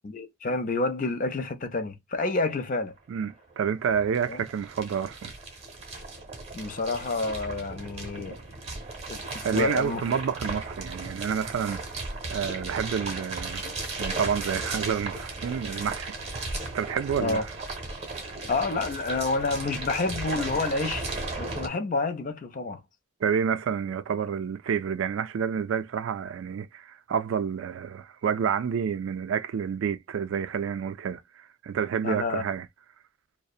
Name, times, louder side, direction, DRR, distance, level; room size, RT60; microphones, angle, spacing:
voice 1, 0.0-2.9 4.3-4.5 6.5-8.4 9.1-10.0 17.2-17.4 18.5-21.0 21.4-22.8 32.0-32.4, left 3 dB, 40° left, 0.4 m, -29 dB
sound 1, 3.0-3.1 3.2-21.7, right 3 dB, 30° right, 0.8 m, -36 dB
voice 2, 3.1-5.3 9.4-11.8 12.3-13.6 14.0-16.5 16.7-17.5 23.2-32.7, right 7 dB, 65° right, 0.3 m, -29 dB
2.7 x 2.1 x 2.3 m
head